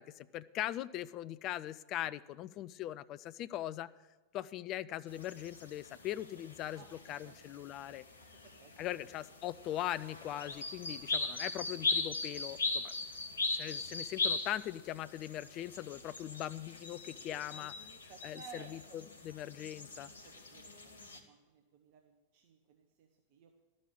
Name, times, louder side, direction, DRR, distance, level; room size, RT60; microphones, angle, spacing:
voice 1, 0.0-3.9 4.3-8.0 8.8-12.9 13.5-17.7 18.2-20.1, left 13 dB, 35° left, 17 dB, 0.4 m, -40 dB
sound 1, 5.1-21.2, left 3 dB, 75° left, 1.1 m, -40 dB
voice 2, 6.7-7.5 7.9-8.3 8.6-8.7 17.3-19.0 20.2-20.7 21.1-23.6, right 6 dB, 45° right, 3 dB, 1.0 m, -57 dB
12.0 x 6.4 x 8.6 m, 1.2 s
figure-of-eight pair, 90°, 0 cm